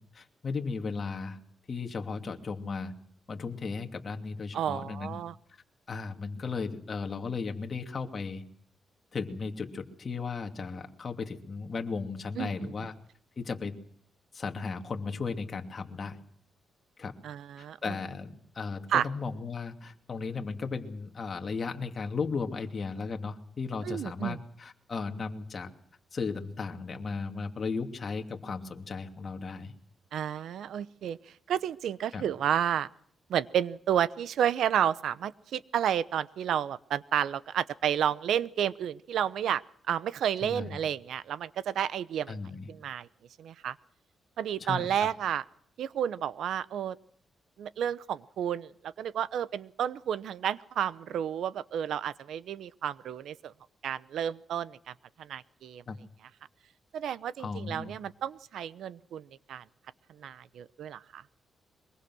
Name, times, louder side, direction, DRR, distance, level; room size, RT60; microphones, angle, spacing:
voice 1, 0.1-1.4 1.7-2.9 3.3-5.2 5.9-8.4 9.1-12.9 13.4-13.7 14.3-16.2 17.0-17.1 17.6-25.7 26.1-29.7 32.1-32.2 40.4-40.8 42.3-42.7 44.6-44.9 55.9-56.0 57.4-57.9, left 4 dB, 35° left, 4 dB, 2.7 m, -35 dB
voice 2, 4.5-5.3 12.4-12.7 17.2-18.0 18.9-19.1 23.8-24.4 30.1-31.2 31.5-32.9 33.3-39.6 39.9-42.4 42.7-43.1 43.4-43.7 44.4-45.4 45.8-47.0 47.6-53.5 53.8-55.8 56.9-59.6 60.2-61.2, right 9 dB, 80° right, 17 dB, 0.8 m, -31 dB
23.5 x 22.5 x 6.3 m, 0.64 s
cardioid pair, 130°, 0 cm